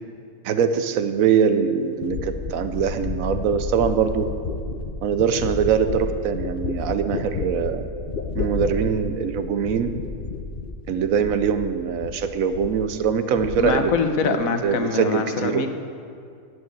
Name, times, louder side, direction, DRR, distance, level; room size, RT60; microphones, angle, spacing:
voice 1, 0.4-4.3 5.0-7.9 8.3-10.0 10.9-13.9 14.6-15.7, right 7 dB, 75° right, 10 dB, 1.1 m, -22 dB
sound 1, 1.3-1.4 2.0-11.7 12.0-12.8 13.1-14.0 14.2-14.8, left 4 dB, 45° left, 0.9 m, -31 dB
voice 2, 13.6-15.7, left 5 dB, 70° left, 7 dB, 1.3 m, -24 dB
9.8 x 7.5 x 9.2 m, 2.3 s
omnidirectional pair, 1.5 m